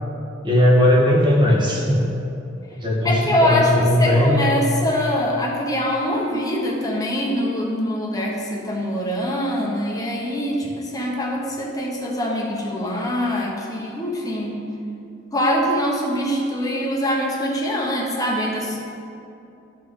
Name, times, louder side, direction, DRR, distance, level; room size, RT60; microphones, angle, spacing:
voice 1, 0.4-2.1 2.8-3.1 3.4-4.3, equal, 25° right, -3 dB, 1.4 m, -17 dB
voice 2, 3.0-3.7 4.0-14.6 15.3-18.8, left 1 dB, 20° left, -2 dB, 1.0 m, -23 dB
13.0 x 4.6 x 3.8 m, 2.6 s
head